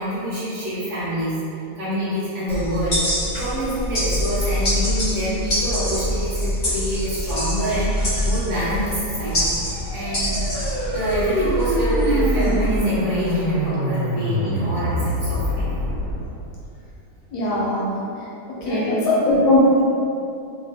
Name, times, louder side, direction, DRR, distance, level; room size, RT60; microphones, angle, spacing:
voice 1, 0.0-1.4 1.8-10.4 10.9-15.7 18.6-18.9 19.3-19.4, right 1 dB, 55° right, -11 dB, 0.8 m, -26 dB
sound 1, 2.5-12.8, equal, 55° left, 0.6 m, -24 dB
sound 2, 9.3-16.2, equal, 20° right, 0.6 m, -25 dB
voice 2, 17.3-18.0 18.7-19.8, left 1 dB, 70° left, -6 dB, 1.0 m, -18 dB
3.1 x 2.2 x 2.7 m, 2.6 s
omnidirectional pair, 2.1 m